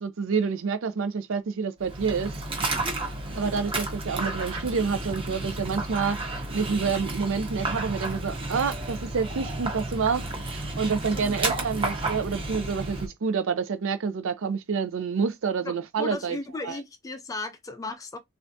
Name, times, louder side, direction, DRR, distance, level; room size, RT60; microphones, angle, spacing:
voice 1, 0.0-2.3 3.3-16.4 16.6-16.8, right 5 dB, 65° right, 0.5 m, -28 dB
Dog, 1.8-13.1, right 2 dB, 25° right, 0.8 m, -32 dB
voice 2, 10.9-11.4 15.6-18.2, left 3 dB, 15° left, 0.4 m, -36 dB
3.3 x 2.4 x 2.6 m
head